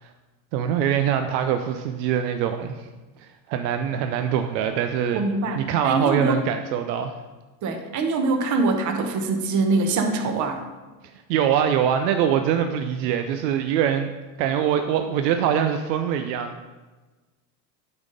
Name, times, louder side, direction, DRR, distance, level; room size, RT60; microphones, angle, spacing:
voice 1, 0.5-2.8 3.2-5.2 5.5-7.2 11.3-14.1 14.4-16.7, right 9 dB, 80° right, 7 dB, 0.7 m, -23 dB
voice 2, 5.1-5.6 5.8-6.5 7.6-10.6, right 3 dB, 35° right, 5 dB, 1.0 m, -23 dB
8.6 x 4.2 x 5.1 m, 1.2 s
supercardioid pair, 115°, 49 cm